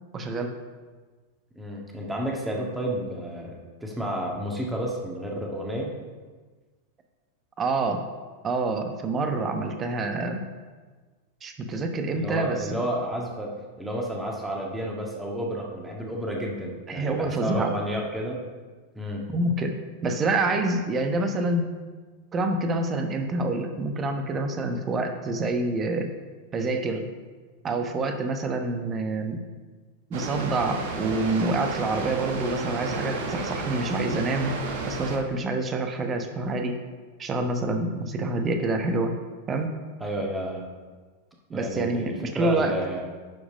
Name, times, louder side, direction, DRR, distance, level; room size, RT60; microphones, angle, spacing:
voice 1, 0.1-0.5 7.6-8.0 8.4-10.4 11.4-12.8 16.9-17.8 19.3-19.8 20.0-21.7 22.3-26.1 26.5-27.1 27.6-29.4 30.1-34.5 34.8-36.8 37.2-39.1 39.5-39.7 41.5-42.7, right 2 dB, 25° right, 6 dB, 1.0 m, -27 dB
voice 2, 1.5-5.9 12.1-13.5 13.8-18.4 18.9-19.2 40.0-40.7 41.5-43.0, equal, 10° right, -1 dB, 1.7 m, -31 dB
Water, 30.1-35.2, right 3 dB, 55° right, 1.2 m, -32 dB
10.5 x 5.1 x 5.0 m, 1.4 s
figure-of-eight pair, 90°, 0 cm